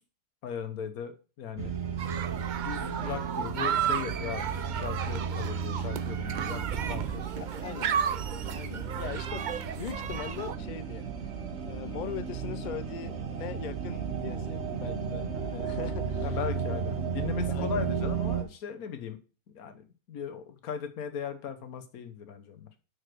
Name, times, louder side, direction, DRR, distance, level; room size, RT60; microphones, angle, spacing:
voice 1, 0.4-1.7 2.6-7.6 16.2-19.2 19.5-22.7, left 8 dB, 85° left, 8 dB, 1.5 m, -38 dB
sound 1, 1.6-18.4, right 6 dB, 50° right, 1.4 m, -34 dB
sound 2, 2.0-10.6, right 8 dB, 85° right, 0.4 m, -33 dB
voice 2, 7.6-8.0 8.5-9.5 9.8-11.1 11.7-16.4 16.7-16.8 17.4-17.8, left 9 dB, 70° left, 13 dB, 0.4 m, -40 dB
6.4 x 4.9 x 6.1 m, 0.36 s
omnidirectional pair, 1.5 m